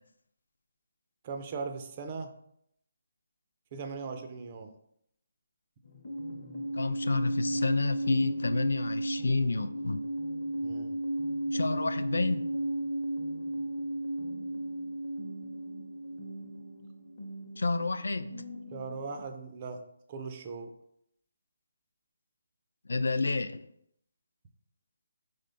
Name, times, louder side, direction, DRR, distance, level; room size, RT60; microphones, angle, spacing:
voice 1, 1.2-2.3 3.7-4.7 10.6-11.0 18.7-20.7, right 4 dB, 20° right, 6 dB, 0.3 m, -39 dB
sound 1, 5.8-19.2, right 1 dB, 40° left, 0.7 m, -35 dB
voice 2, 6.8-10.0 11.5-12.5 17.6-18.4 22.9-23.6, left 3 dB, 85° left, 11 dB, 0.3 m, -29 dB
3.8 x 3.3 x 3.8 m, 0.73 s
hypercardioid pair, 180°, 0 cm